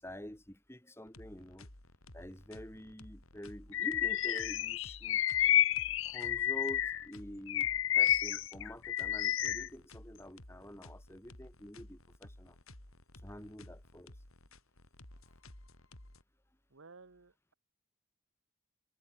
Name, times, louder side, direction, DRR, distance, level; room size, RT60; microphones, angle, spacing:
voice 1, 0.0-1.7 2.1-5.2 6.0-7.7 8.0-12.6 13.2-14.2, equal, 10° left, 2.0 m, -47 dB
sound 1, 1.1-16.2, left 1 dB, 80° left, 4.8 m, -55 dB
Bird vocalization bird call bird song, 3.7-7.0 7.5-9.7, left 12 dB, 65° left, 0.5 m, -30 dB
voice 2, 16.7-17.5, right 3 dB, 70° right, 1.2 m, -56 dB
head